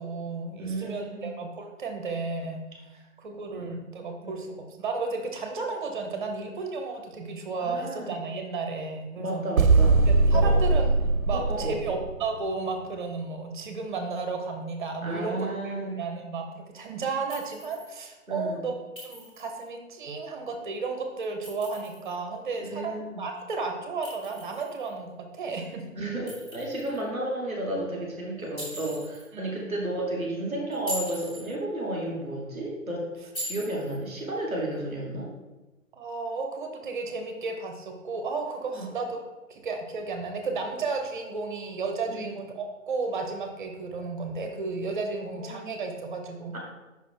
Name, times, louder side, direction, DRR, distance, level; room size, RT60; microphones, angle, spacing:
voice 1, 0.0-2.6 3.2-9.4 10.1-10.9 11.2-18.7 19.0-25.9 29.3-29.8 35.9-39.2 39.5-46.6, right 4 dB, 35° right, 4 dB, 0.9 m, -33 dB
voice 2, 0.6-1.3 3.5-3.8 4.2-4.4 7.6-8.1 9.2-10.6 11.3-11.9 15.0-16.0 18.3-18.7 22.6-23.2 26.0-33.1 33.4-35.3 38.7-38.9 42.1-42.2 45.3-45.7 46.5-46.6, right 1 dB, 5° right, -15 dB, 0.5 m, -33 dB
sound 1, 9.6-12.3, right 3 dB, 80° right, 0.6 m, -21 dB
Chink clink, 17.3-17.9 19.0-19.6 21.2-22.1 24.0-24.9 26.3-27.0 28.6-29.3 30.7-31.5 33.3-34.0, equal, 10° left, 1.9 m, -40 dB
5.5 x 4.1 x 4.6 m, 1.1 s
figure-of-eight pair, 135°, 40 cm